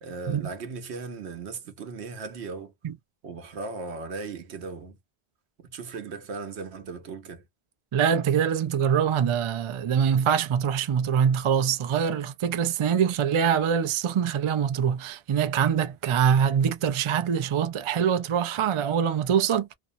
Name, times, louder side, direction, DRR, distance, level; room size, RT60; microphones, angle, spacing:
voice 1, 0.0-2.7 3.2-5.0 5.6-7.4, right 4 dB, 85° right, 1.0 m, -37 dB
voice 2, 7.9-19.7, right 8 dB, 55° right, 0.3 m, -24 dB
2.6 x 2.0 x 2.5 m
omnidirectional pair, 1.1 m